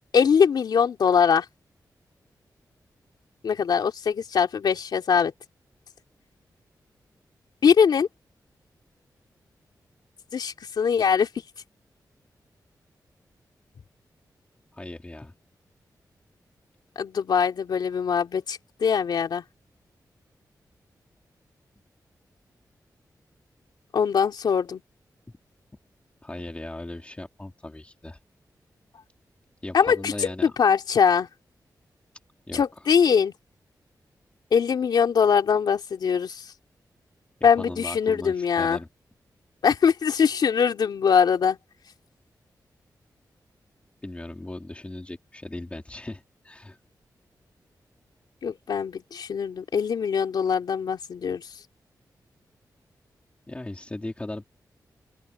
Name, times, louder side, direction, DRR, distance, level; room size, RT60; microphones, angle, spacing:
voice 1, 0.1-1.4 3.4-5.3 7.6-8.1 10.3-11.3 17.0-19.4 23.9-24.8 29.7-31.3 32.5-33.3 34.5-36.4 37.4-38.8 39.6-41.6 48.4-51.4, left 6 dB, 80° left, 2.9 m, -22 dB
voice 2, 14.7-15.3 25.3-25.4 26.2-28.2 29.6-30.5 32.5-32.8 37.4-38.9 44.0-46.8 53.5-54.4, left 2 dB, 20° left, 3.3 m, -38 dB
open air
wide cardioid pair, 105°, 7 cm